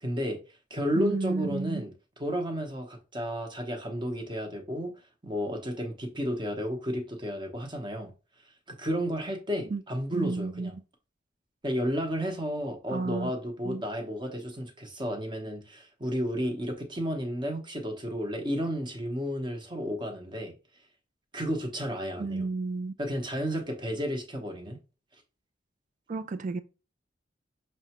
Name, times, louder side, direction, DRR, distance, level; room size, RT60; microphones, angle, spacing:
voice 1, 0.0-0.4 0.7-1.9 2.2-4.9 5.2-8.1 8.7-10.7 11.6-20.5 21.3-22.5 23.0-24.8, equal, 25° right, 0.9 m, -32 dB
voice 2, 1.0-1.9 9.7-9.8 10.1-10.8 12.9-13.3 13.6-13.8 22.2-22.9 26.1-26.6, right 3 dB, 45° right, 0.4 m, -32 dB
6.0 x 2.1 x 2.9 m
head